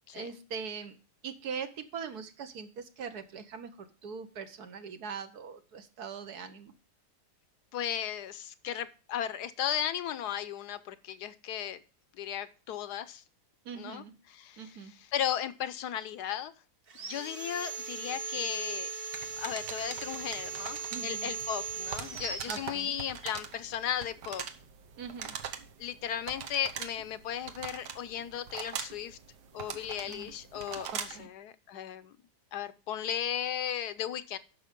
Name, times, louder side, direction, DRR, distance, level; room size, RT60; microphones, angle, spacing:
voice 1, 0.1-1.0 1.2-6.7 13.6-14.1 14.6-14.9 20.9-21.3 22.5-22.9 25.0-25.3 30.1-30.3 30.9-31.3, right 6 dB, 70° right, 8 dB, 1.5 m, -41 dB
voice 2, 7.7-11.8 12.2-13.2 13.8-14.0 14.4-14.6 15.1-16.5 17.0-18.9 19.4-24.4 25.8-29.2 29.5-32.1 32.5-34.4, left 10 dB, 75° left, 13 dB, 1.2 m, -35 dB
Sawing, 16.9-23.4, right 4 dB, 40° right, 1.0 m, -39 dB
sound 1, 19.1-31.3, right 7 dB, 85° right, 1.6 m, -43 dB
10.0 x 6.4 x 5.2 m, 0.36 s
omnidirectional pair, 1.8 m